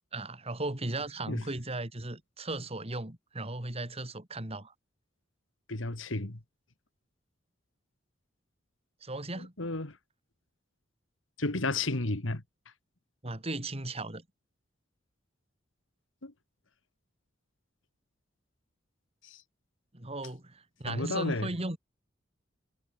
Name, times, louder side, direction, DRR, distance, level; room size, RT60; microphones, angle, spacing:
voice 1, 0.1-4.7 9.0-9.5 13.2-14.2 19.9-21.8, right 2 dB, 30° right, 2.9 m, -36 dB
voice 2, 5.7-6.4 9.3-10.0 11.4-12.4 16.2-16.3 19.2-19.4 20.8-21.5, left 2 dB, 85° left, 2.2 m, -32 dB
head